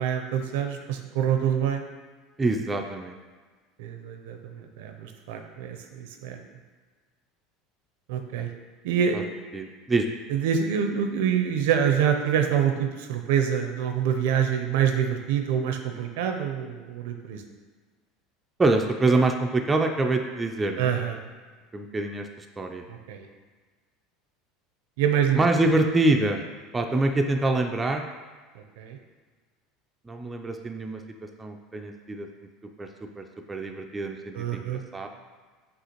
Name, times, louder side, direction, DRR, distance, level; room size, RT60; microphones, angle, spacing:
voice 1, 0.0-1.8 3.8-6.4 8.1-8.5 8.8-9.2 10.3-17.4 20.8-21.2 22.9-23.3 25.0-25.4 28.8-29.0 34.3-34.8, right 8 dB, 80° right, 5 dB, 0.5 m, -26 dB
voice 2, 2.4-3.2 8.4-8.5 9.1-9.2 9.5-10.1 18.6-20.9 21.7-22.3 22.6-22.8 25.3-26.4 26.7-28.0 30.1-31.0 31.4-32.3 32.8-32.9 33.2-35.1, right 2 dB, 15° right, 3 dB, 0.3 m, -25 dB
6.3 x 2.4 x 2.9 m, 1.4 s
supercardioid pair, 125°, 0 cm